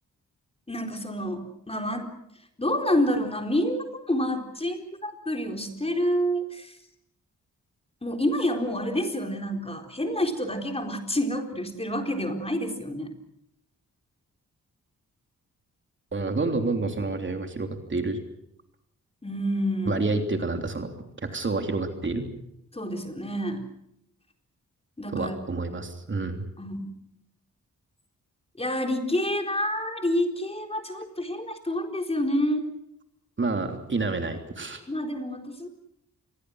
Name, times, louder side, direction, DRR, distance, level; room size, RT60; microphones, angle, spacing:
voice 1, 0.7-2.1 2.6-6.8 8.0-13.1 19.2-20.0 22.7-23.6 25.0-25.4 26.6-26.8 28.6-32.7 34.9-35.7, equal, 20° left, 4 dB, 4.1 m, -28 dB
voice 2, 16.1-18.2 19.8-20.9 21.2-22.3 25.1-26.5 33.4-34.8, right 3 dB, 40° right, 5 dB, 3.2 m, -28 dB
27.0 x 22.0 x 6.4 m, 0.78 s
cardioid pair, 90°, 31 cm